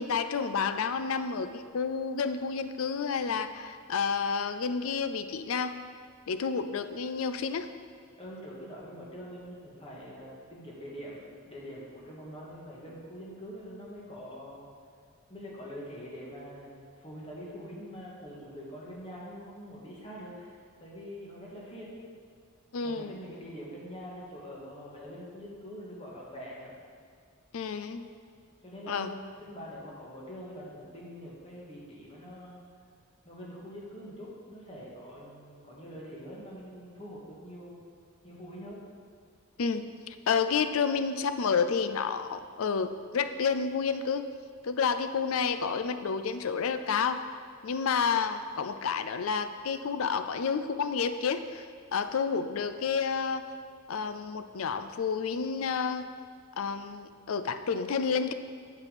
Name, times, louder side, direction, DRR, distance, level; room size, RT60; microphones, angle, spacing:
voice 1, 0.0-5.8 6.3-7.7 22.7-23.1 27.5-28.0 28.9-29.1 39.6-44.3 44.6-47.2 47.6-51.6 51.9-53.4 53.9-56.1 56.6-58.3, left 5 dB, 80° left, 10 dB, 0.4 m, -30 dB
voice 2, 8.2-14.7 15.3-21.9 22.8-26.7 28.6-29.1 29.4-32.6 33.2-37.8 38.2-38.8, equal, 25° left, -5 dB, 1.8 m, -44 dB
8.2 x 6.1 x 5.2 m, 2.1 s
head